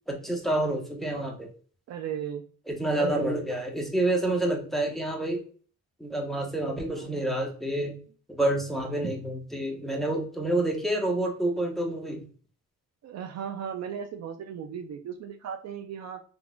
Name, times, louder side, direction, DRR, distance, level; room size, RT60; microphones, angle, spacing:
voice 1, 0.1-1.5 2.7-5.4 6.0-7.9 8.3-12.2, right 1 dB, ahead, 0 dB, 0.8 m, -28 dB
voice 2, 1.9-2.4 6.9-7.3 13.0-16.2, right 8 dB, 60° right, 7 dB, 0.5 m, -36 dB
3.8 x 2.3 x 2.3 m, 0.43 s
cardioid pair, 90°, 30 cm